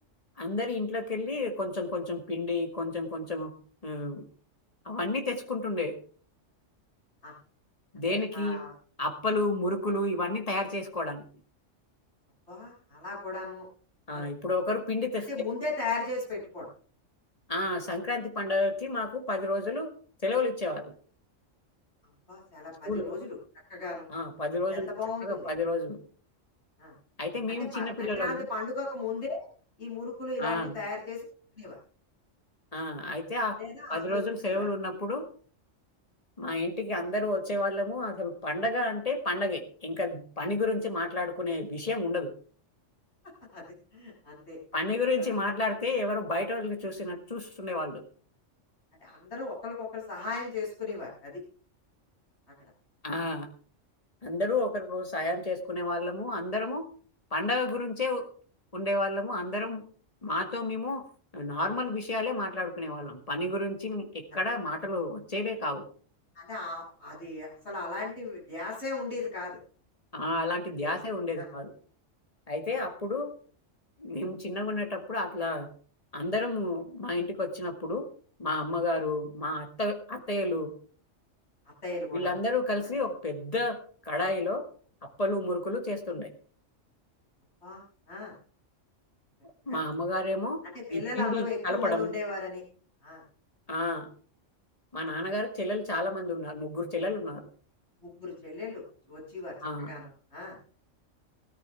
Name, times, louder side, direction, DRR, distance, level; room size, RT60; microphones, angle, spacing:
voice 1, 0.4-3.5 3.8-4.2 4.9-6.0 7.9-8.6 9.0-11.2 14.1-15.3 17.5-19.9 20.2-20.8 22.8-23.2 24.1-24.9 25.2-26.0 27.2-28.4 30.4-30.7 32.7-33.6 33.9-35.3 36.4-42.3 44.7-48.0 53.0-53.5 54.2-56.9 57.3-58.3 58.7-59.8 60.2-61.0 61.3-65.9 70.1-71.7 72.5-73.3 74.0-75.7 76.1-78.1 78.4-80.7 82.1-83.8 84.1-84.7 85.0-86.3 89.7-90.6 90.9-92.1 93.7-94.1 94.9-97.5 99.6-99.9, left 2 dB, 30° left, 4 dB, 2.0 m, -31 dB
voice 2, 8.1-8.7 12.5-13.7 14.1-14.3 15.1-16.7 22.3-23.4 23.7-24.1 24.7-25.5 26.8-26.9 27.5-29.5 29.8-31.2 31.6-31.8 33.6-34.2 34.5-34.7 43.5-44.6 45.2-45.3 49.0-51.4 66.3-69.6 70.8-70.9 71.4-71.5 72.7-72.8 81.8-82.3 87.6-88.3 89.7-89.8 90.6-92.6 93.0-93.2 98.0-98.8 99.1-100.6, left 3 dB, 60° left, -5 dB, 7.5 m, -37 dB
16.5 x 13.5 x 3.5 m, 0.43 s
omnidirectional pair, 1.3 m